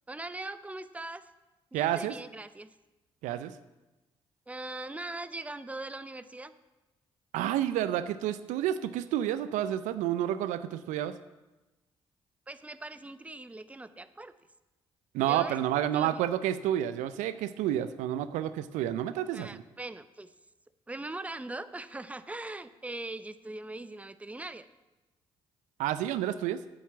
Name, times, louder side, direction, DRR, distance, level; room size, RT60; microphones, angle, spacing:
voice 1, 0.1-1.2 1.7-2.7 4.5-6.5 12.5-14.3 15.3-15.5 15.9-16.2 19.3-20.3 20.9-24.7, right 2 dB, 10° right, 13 dB, 0.6 m, -40 dB
voice 2, 1.7-2.1 3.2-3.5 7.3-11.2 15.1-19.6 25.8-26.6, right 11 dB, 75° right, 13 dB, 0.5 m, -30 dB
8.8 x 7.2 x 6.9 m, 1.1 s
hypercardioid pair, 45°, 13 cm